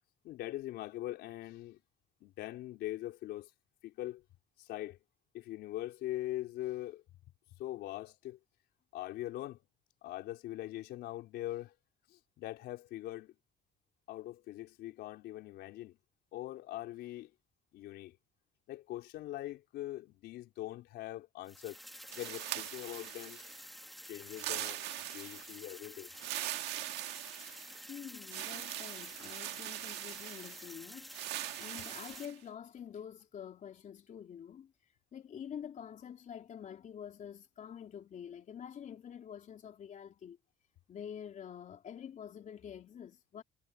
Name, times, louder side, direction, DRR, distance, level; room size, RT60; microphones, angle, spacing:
voice 1, 0.2-1.8 2.2-3.5 3.8-4.2 4.6-5.0 5.3-7.0 7.6-8.4 8.9-9.6 10.0-11.7 12.1-13.3 14.1-16.0 16.3-17.3 17.7-18.2 18.7-21.8 22.2-23.4 24.1-24.9 25.1-26.1, left 15 dB, 80° left, 4.6 m, -42 dB
sound 1, 21.4-32.3, equal, ahead, 2.1 m, -50 dB
sound 2, 22.1-23.6 24.3-25.6 26.1-27.8 28.3-30.7 31.1-32.4, right 16 dB, 90° right, 1.7 m, -41 dB
voice 2, 27.9-34.7 35.1-40.4 40.9-43.4, left 8 dB, 50° left, 3.7 m, -47 dB
cardioid pair, 110°, 17 cm